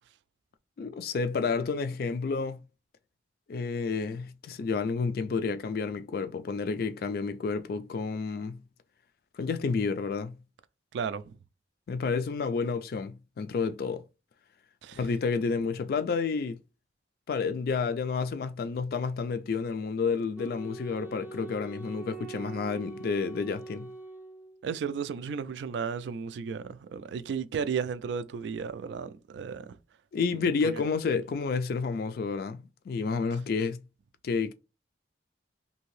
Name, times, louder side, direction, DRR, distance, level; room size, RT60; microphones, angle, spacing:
voice 1, 0.8-2.6 3.5-8.6 9.4-10.4 11.9-14.0 14.9-16.6 17.3-23.9 30.1-33.8 34.2-34.5, left 4 dB, 55° left, 0.3 m, -30 dB
voice 2, 10.9-11.3 14.8-15.0 24.6-29.7 30.7-30.8, right 6 dB, 80° right, 0.3 m, -34 dB
Wind instrument woodwind instrument, 20.4-24.8, right 4 dB, 10° right, 0.4 m, -43 dB
2.8 x 2.7 x 3.1 m
head